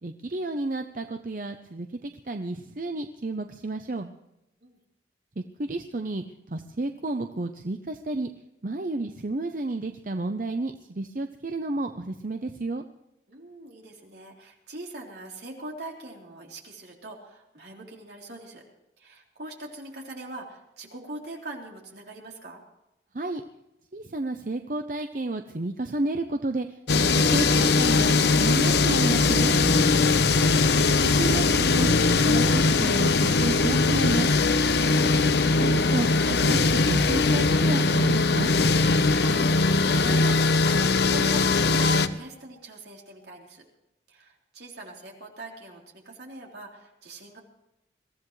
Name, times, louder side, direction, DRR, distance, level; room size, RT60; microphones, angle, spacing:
voice 1, 0.0-4.1 5.4-8.3 8.6-12.8 23.1-23.4 23.9-29.5 31.0-31.9 32.2-34.4 35.6-38.5, right 2 dB, 50° right, 7 dB, 0.7 m, -31 dB
voice 2, 13.3-18.6 19.0-22.6 39.1-43.6 44.1-47.4, right 2 dB, 75° right, -1 dB, 3.7 m, -41 dB
sound 1, 26.9-42.1, left 3 dB, 70° left, 0.7 m, -21 dB
22.5 x 15.5 x 3.2 m, 0.91 s
head